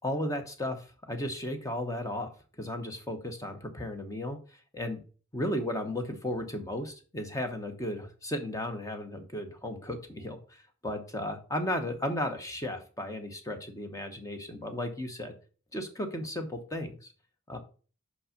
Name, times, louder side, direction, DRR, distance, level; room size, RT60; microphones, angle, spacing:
voice 1, 0.0-2.3 2.6-4.4 4.7-5.0 5.3-15.3 15.7-17.1 17.5-17.6, left 1 dB, 15° left, 5 dB, 1.1 m, -35 dB
5.6 x 5.5 x 5.1 m, 0.38 s
head